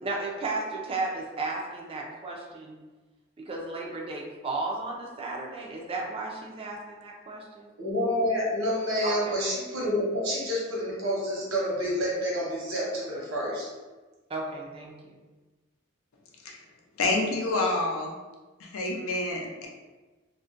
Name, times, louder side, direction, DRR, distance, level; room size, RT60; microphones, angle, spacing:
voice 1, 0.0-2.7 3.4-7.7 9.0-9.3 14.3-15.2, right 3 dB, 30° right, -1 dB, 0.3 m, -34 dB
voice 2, 7.8-13.7, equal, 80° right, -6 dB, 1.0 m, -28 dB
voice 3, 17.0-18.2 18.6-19.7, left 2 dB, 85° left, 0 dB, 0.5 m, -28 dB
2.5 x 2.1 x 2.4 m, 1.2 s
head